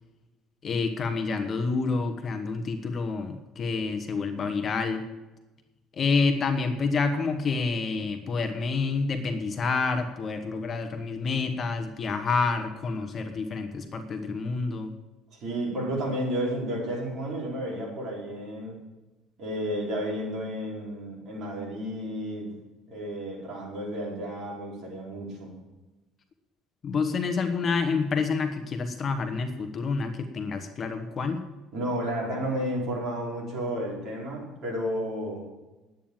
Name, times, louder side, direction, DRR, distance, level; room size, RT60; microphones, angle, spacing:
voice 1, 0.6-5.1 5.9-14.9 26.8-31.4, left 4 dB, 30° left, 7 dB, 1.1 m, -28 dB
voice 2, 15.3-18.8 19.4-22.5 22.9-25.5 31.7-35.4, equal, 45° right, -3 dB, 4.8 m, -32 dB
11.0 x 8.9 x 7.3 m, 1.1 s
cardioid pair, 145°, 0 cm